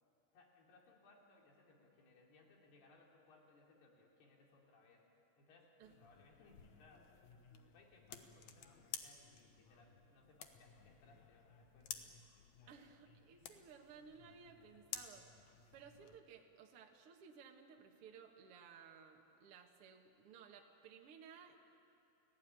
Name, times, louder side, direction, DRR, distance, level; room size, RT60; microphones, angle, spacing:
voice 1, 0.3-5.1 5.4-7.2 7.7-12.1 12.6-12.9, left 3 dB, 90° left, -1 dB, 5.2 m, -67 dB
sound 1, 5.8-16.2, left 8 dB, 65° left, 2.0 m, -54 dB
voice 2, 12.7-15.3 15.7-21.6, right 6 dB, 50° right, 2 dB, 1.8 m, -58 dB
30.0 x 17.0 x 8.9 m, 2.9 s
omnidirectional pair, 4.5 m